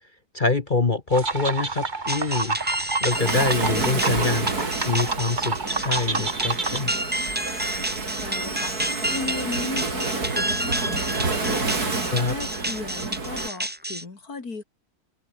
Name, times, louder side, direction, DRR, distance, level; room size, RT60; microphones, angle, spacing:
voice 1, 0.3-2.6 3.0-4.5 4.8-6.9 12.1-12.3, left 3 dB, 35° left, 1.5 m, -25 dB
sound 1, 1.1-6.8, right 3 dB, 30° right, 1.8 m, -29 dB
sound 2, 2.1-14.0, right 1 dB, 5° right, 1.4 m, -30 dB
Waves surf, 3.1-13.5, right 3 dB, 80° right, 4.3 m, -29 dB
voice 2, 8.2-14.6, left 4 dB, 75° left, 3.6 m, -36 dB
omnidirectional pair, 1.6 m